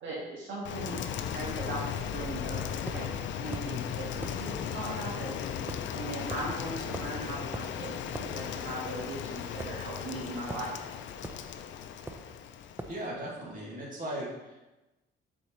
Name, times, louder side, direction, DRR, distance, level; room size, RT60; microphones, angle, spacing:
voice 1, 0.0-2.6 2.9-3.1 3.4-5.4 5.9-7.9 8.2-10.8, right 2 dB, 75° right, -5 dB, 1.7 m, -39 dB
Rain, 0.6-13.1, left 8 dB, 70° left, 0.5 m, -37 dB
sound 1, 2.9-3.0 3.5-3.7 4.2-4.4 5.7-5.9 6.3-6.5 6.9-7.2 7.5-7.7 8.1-8.3 9.6-10.1 10.5-10.7 11.2-11.5 12.1-12.3 12.8-13.0, right 2 dB, 10° right, 0.5 m, -40 dB
voice 2, 12.9-14.6, right 1 dB, 45° right, -4 dB, 2.1 m, -37 dB
6.6 x 4.6 x 3.2 m, 1.0 s
cardioid pair, 90°, 20 cm